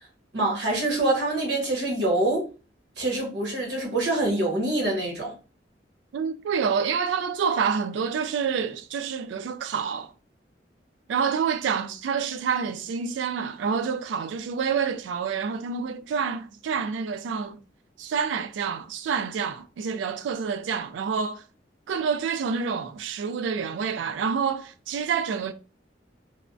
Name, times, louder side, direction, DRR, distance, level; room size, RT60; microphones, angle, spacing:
voice 1, 0.3-2.5 3.0-5.3, right 2 dB, 65° right, 1.2 m, -25 dB
voice 2, 6.1-10.1 11.1-17.6 18.0-21.4 21.9-25.5, right 6 dB, 85° right, 0.3 m, -28 dB
3.4 x 2.0 x 2.5 m
head